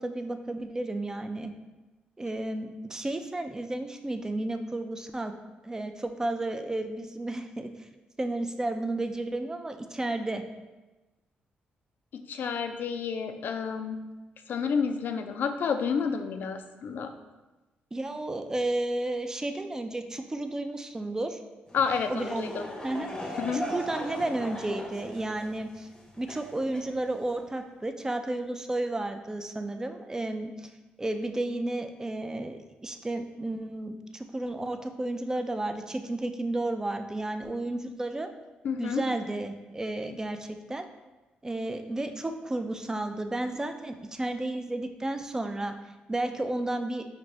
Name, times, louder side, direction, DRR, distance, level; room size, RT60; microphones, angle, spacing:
voice 1, 0.0-1.5 2.2-5.3 5.6-7.7 8.2-10.4 17.9-21.4 22.1-22.5 22.8-25.9 26.2-30.7 31.0-38.3 38.8-40.8 41.4-45.7 46.1-47.0, right 2 dB, 15° right, 6 dB, 0.3 m, -32 dB
voice 2, 12.1-14.0 14.5-17.1 21.7-22.7 23.4-23.6 38.6-39.0, left 6 dB, 65° left, 7 dB, 0.4 m, -30 dB
Laughter / Crowd, 21.7-27.4, left 1 dB, 20° left, 0.7 m, -39 dB
5.0 x 2.5 x 3.2 m, 1.1 s
cardioid pair, 85°, 4 cm